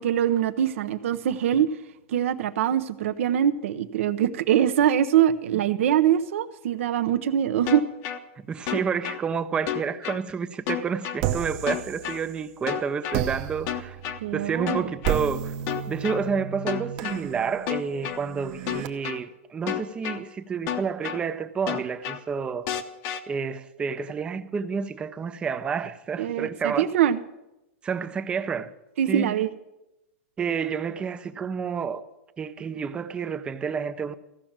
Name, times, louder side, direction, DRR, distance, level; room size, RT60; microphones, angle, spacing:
voice 1, 0.0-1.7 2.1-7.8 14.2-14.9 26.2-27.2 29.0-29.5, right 10 dB, 70° right, 0.8 m, -23 dB
sound 1, 7.7-8.2 8.7-9.2 9.7-10.2 10.7-11.2 11.7-12.2 12.7-13.2 13.7-14.2 14.7-15.2 15.7-16.2 16.7-17.2 17.7-18.2 18.7-19.2 19.7-20.2 20.7-21.2 21.7-22.2 22.7-23.2, left 10 dB, 40° left, 0.8 m, -30 dB
voice 2, 8.5-14.0 14.3-15.5 15.9-22.7 23.3-26.9 27.8-28.7 29.1-29.4 30.4-32.1 32.4-34.1, right 6 dB, 15° right, 0.5 m, -29 dB
sound 2, 11.2-12.6 13.1-18.9, right 10 dB, 40° right, 0.9 m, -33 dB
15.0 x 6.0 x 8.7 m
supercardioid pair, 160°, 7 cm